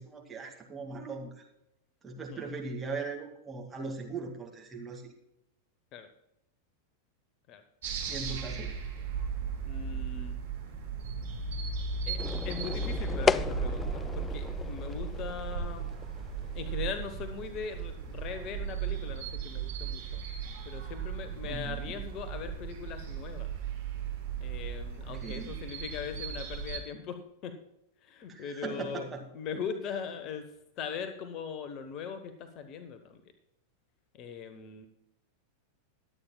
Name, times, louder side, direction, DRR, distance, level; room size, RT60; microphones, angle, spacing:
voice 1, 0.0-1.4 2.0-5.1 8.1-8.7 21.4-22.0 25.1-25.6 28.3-29.2, right 4 dB, 15° right, 1 dB, 2.3 m, -39 dB
sound 1, 7.8-26.8, right 5 dB, 60° right, 3.1 m, -36 dB
voice 2, 9.7-10.4 12.1-12.2 12.4-15.9 16.5-20.2 20.6-23.5 24.4-27.6 28.0-29.1 29.3-30.4 30.8-33.2 34.1-34.9, left 6 dB, 35° left, 9 dB, 1.1 m, -40 dB
sound 2, 12.2-18.8, left 5 dB, 20° left, 0.4 m, -35 dB
21.0 x 8.8 x 2.3 m, 0.81 s
figure-of-eight pair, 90°, 0 cm